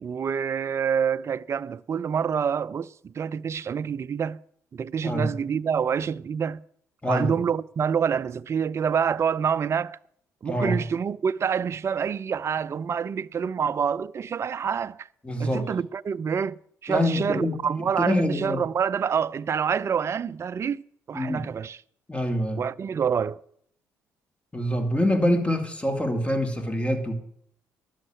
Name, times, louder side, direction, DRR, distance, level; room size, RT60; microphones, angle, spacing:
voice 1, 0.0-4.4 4.7-6.6 7.1-10.0 10.4-15.1 15.4-21.8 22.6-23.4, right 7 dB, 40° right, 0.4 m, -27 dB
voice 2, 5.0-5.3 7.0-7.4 10.4-10.8 15.2-15.7 16.9-18.6 21.1-21.4 22.1-22.6 24.5-27.2, left 1 dB, 15° left, 2.5 m, -25 dB
11.0 x 6.5 x 8.9 m
supercardioid pair, 60°, 7 cm